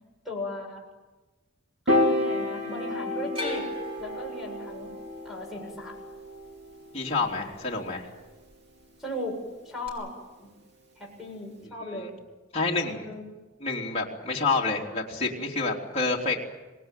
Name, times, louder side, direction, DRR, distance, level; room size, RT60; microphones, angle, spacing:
voice 1, 0.2-0.8 1.9-3.7 4.0-4.9 5.2-6.0 9.0-9.4 9.6-10.1 10.4-10.5 11.0-12.2 13.0-13.3, left 1 dB, ahead, 0 dB, 7.6 m, -37 dB
Piano, 1.9-8.2, left 1 dB, 60° right, 3.0 m, -31 dB
sound 1, 3.3-7.5 7.8-8.5 9.9-10.0, left 1 dB, 30° right, 6.2 m, -39 dB
voice 2, 6.9-8.1 11.9-12.1 12.5-13.1 13.6-16.4, left 3 dB, 30° left, -3 dB, 3.4 m, -28 dB
26.5 x 19.5 x 9.3 m, 1.2 s
head